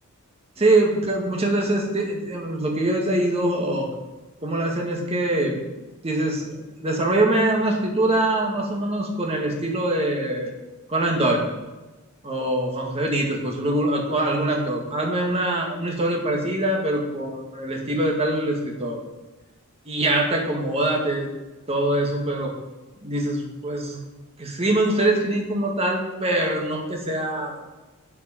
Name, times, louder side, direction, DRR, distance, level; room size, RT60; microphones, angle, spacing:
voice 1, 0.6-3.9 4.4-5.6 6.0-10.5 10.9-11.4 12.2-19.0 19.9-21.3 21.7-22.5 23.0-24.0 24.4-27.5, right 1 dB, 30° right, 0 dB, 1.7 m, -23 dB
7.6 x 7.3 x 5.7 m, 1.1 s
head